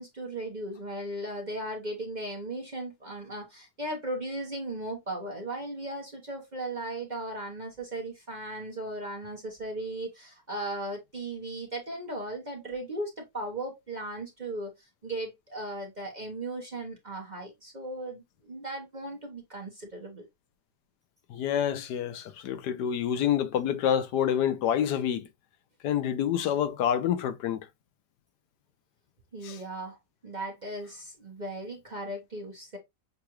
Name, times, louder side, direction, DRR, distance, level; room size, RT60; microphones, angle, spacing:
voice 1, 0.0-14.7 15.0-20.2 29.3-30.0 30.2-32.8, right 1 dB, 30° right, 0.9 m, -37 dB
voice 2, 21.3-25.3 25.8-27.7 29.4-29.6, left 9 dB, 75° left, 1.1 m, -27 dB
6.7 x 2.5 x 3.0 m
omnidirectional pair, 1.9 m